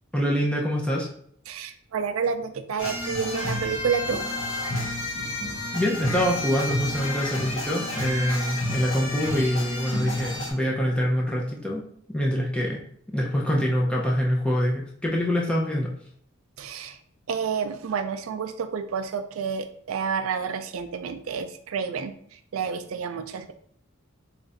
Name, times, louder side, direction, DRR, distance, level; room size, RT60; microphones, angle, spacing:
voice 1, 0.1-1.1 5.7-12.8 13.1-15.9, equal, 5° left, -2 dB, 0.5 m, -25 dB
voice 2, 1.5-4.2 16.6-17.0 17.3-22.1 22.5-23.5, right 6 dB, 80° right, 9 dB, 0.4 m, -29 dB
sound 1, 2.8-10.5, left 1 dB, 65° left, 1.0 m, -30 dB
3.2 x 2.4 x 4.0 m, 0.63 s
head